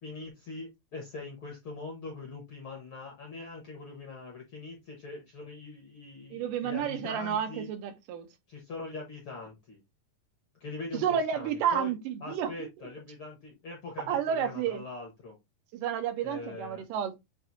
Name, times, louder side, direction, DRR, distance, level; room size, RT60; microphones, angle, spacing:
voice 1, 0.0-7.7 8.5-9.8 10.6-11.9 12.2-15.4 16.2-16.8, left 3 dB, 60° left, 1.4 m, -42 dB
voice 2, 6.3-8.3 11.0-12.5 14.1-14.9 15.7-17.2, right 8 dB, 80° right, 2.3 m, -31 dB
7.3 x 2.6 x 2.6 m
omnidirectional pair, 3.8 m